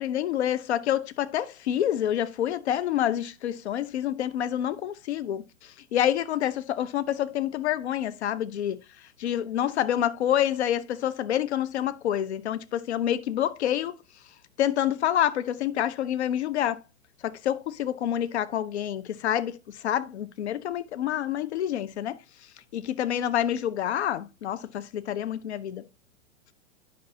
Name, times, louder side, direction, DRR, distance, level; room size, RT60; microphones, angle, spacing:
voice 1, 0.0-8.8 9.2-14.0 14.6-16.8 17.2-22.2 22.7-25.8, left 11 dB, 55° left, 0.7 m, -27 dB
10.0 x 5.4 x 2.8 m
figure-of-eight pair, 100°, 40 cm